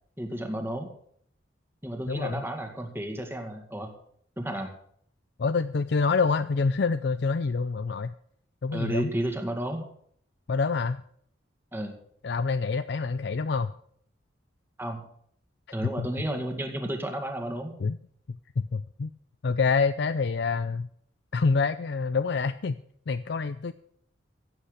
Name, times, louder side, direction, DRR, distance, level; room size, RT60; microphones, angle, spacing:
voice 1, 0.2-0.9 1.8-3.9 4.4-4.7 8.7-9.9 11.7-12.0 14.8-15.1 15.7-17.7, right 1 dB, 10° right, 4 dB, 2.1 m, -32 dB
voice 2, 2.1-2.4 5.4-8.1 8.6-9.1 10.5-11.0 12.2-13.7 16.0-16.1 17.8-18.0 18.3-19.1 19.4-20.9 21.3-22.8 23.1-23.7, left 4 dB, 60° left, 12 dB, 0.5 m, -26 dB
16.0 x 8.3 x 6.6 m, 0.65 s
head